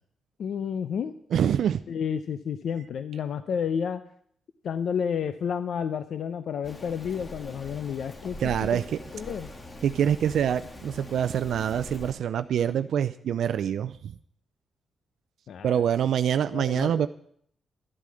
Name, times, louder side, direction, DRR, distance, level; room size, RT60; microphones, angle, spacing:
voice 1, 0.4-1.1 1.9-4.0 4.6-8.8 9.1-9.5 15.5-15.8 16.5-17.1, left 7 dB, 70° left, 10 dB, 0.6 m, -31 dB
voice 2, 1.3-1.8 8.4-9.0 9.8-14.1 15.6-17.1, right 9 dB, 75° right, 12 dB, 0.4 m, -25 dB
Rain, 6.6-12.1, left 1 dB, 25° left, 1.7 m, -42 dB
12.5 x 8.4 x 7.5 m, 0.65 s
cardioid pair, 110°, 0 cm